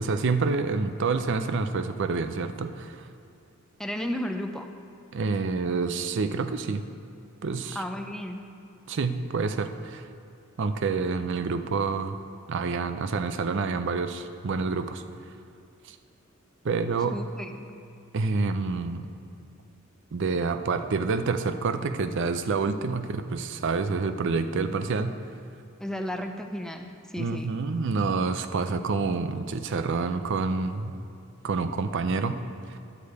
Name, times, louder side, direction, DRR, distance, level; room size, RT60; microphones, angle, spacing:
voice 1, 0.0-3.1 5.1-6.9 7.4-7.8 8.9-10.0 10.6-12.2 12.5-15.0 15.9-16.0 16.6-17.2 18.1-19.1 20.1-25.1 27.2-30.9 31.4-32.4 32.7-32.8, right 4 dB, 60° right, 10 dB, 0.5 m, -28 dB
voice 2, 3.8-4.7 7.7-8.4 17.1-17.7 25.8-27.5, equal, 5° left, 5 dB, 0.4 m, -33 dB
10.5 x 4.9 x 8.0 m, 2.4 s
head